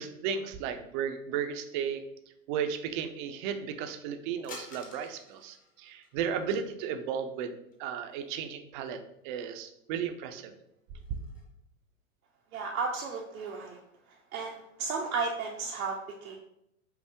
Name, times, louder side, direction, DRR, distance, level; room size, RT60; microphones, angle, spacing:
voice 1, 0.0-2.0 2.5-7.5 7.8-10.5, right 7 dB, 40° right, 8 dB, 0.4 m, -34 dB
Plate Plastic Ceramic Dropped On Floor Pack, 4.4-6.6 7.7-8.5 8.8-8.9 9.9-10.0 10.4-11.5, left 3 dB, 20° left, 0.7 m, -51 dB
voice 2, 12.5-13.8 14.3-16.4, right 4 dB, 85° right, -1 dB, 0.7 m, -34 dB
5.5 x 2.1 x 2.8 m, 0.79 s
hypercardioid pair, 105°, 42 cm